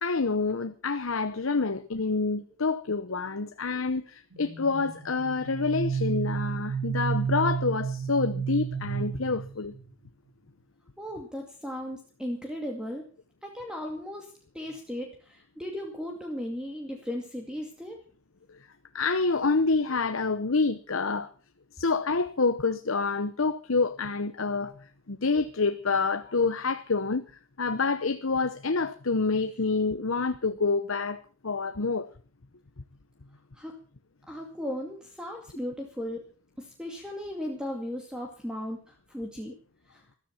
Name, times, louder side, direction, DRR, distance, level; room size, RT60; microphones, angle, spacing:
voice 1, 0.0-9.7 18.9-21.3 21.8-24.8 25.1-27.2 27.6-32.1, left 4 dB, 70° left, 1.0 m, -27 dB
sound 1, 4.3-9.9, right 6 dB, 75° right, 2.3 m, -31 dB
voice 2, 11.0-13.0 13.4-18.0 33.5-33.7 34.3-36.2 36.6-39.5 39.9-40.0, equal, 5° right, 2.3 m, -36 dB
14.5 x 13.5 x 5.9 m
head